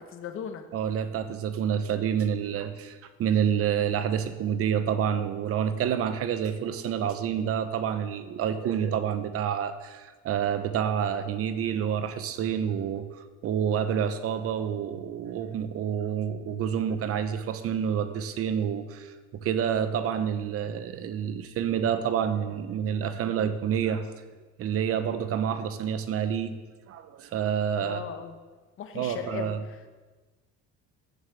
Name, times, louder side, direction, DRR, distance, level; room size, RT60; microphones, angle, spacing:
voice 1, 0.0-0.6 27.8-28.4 28.8-29.9, left 8 dB, 45° left, 6 dB, 1.0 m, -38 dB
voice 2, 0.7-24.1 24.6-26.6 26.9-28.0 28.9-29.6, right 8 dB, 50° right, 10 dB, 0.9 m, -28 dB
7.3 x 7.2 x 7.2 m, 1.3 s
cardioid pair, 135°, 30 cm